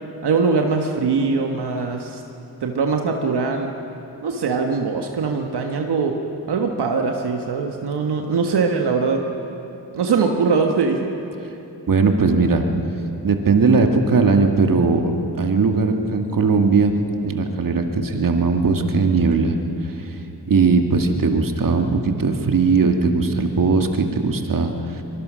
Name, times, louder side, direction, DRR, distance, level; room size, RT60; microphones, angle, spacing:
voice 1, 0.2-2.2 2.6-3.7 4.2-6.2 6.5-9.3 9.9-11.1, right 4 dB, 80° right, 3 dB, 1.6 m, -21 dB
voice 2, 11.9-12.7 13.2-16.9 17.2-20.2 20.5-25.0, right 4 dB, 55° right, 4 dB, 2.1 m, -19 dB
24.0 x 22.0 x 6.4 m, 2.9 s
cardioid pair, 85°, 39 cm